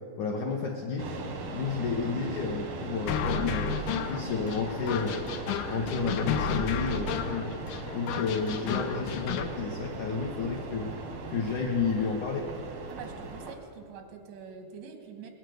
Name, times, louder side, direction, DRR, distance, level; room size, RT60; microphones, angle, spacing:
voice 1, 0.2-1.1 1.5-5.2 5.6-7.5 7.9-10.9 11.3-12.5, left 5 dB, 75° left, 0 dB, 1.8 m, -31 dB
sound 1, 1.0-13.6, right 3 dB, 70° right, 1.3 m, -39 dB
sound 2, 3.1-9.5, left 6 dB, 90° left, 1.8 m, -32 dB
voice 2, 12.9-15.3, right 6 dB, 90° right, 5 dB, 3.5 m, -45 dB
20.0 x 8.9 x 7.8 m, 2.8 s
omnidirectional pair, 4.8 m